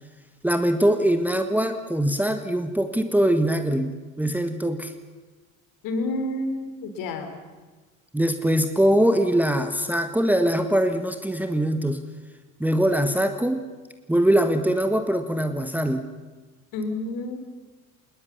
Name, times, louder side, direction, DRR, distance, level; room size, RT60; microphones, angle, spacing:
voice 1, 0.4-4.9 8.1-12.0 12.6-13.7 14.1-16.1, right 1 dB, 5° right, 7 dB, 1.5 m, -22 dB
voice 2, 5.8-7.3 16.7-17.4, left 2 dB, 50° left, 7 dB, 3.8 m, -29 dB
26.0 x 20.5 x 7.1 m, 1.3 s
figure-of-eight pair, 60°, 42 cm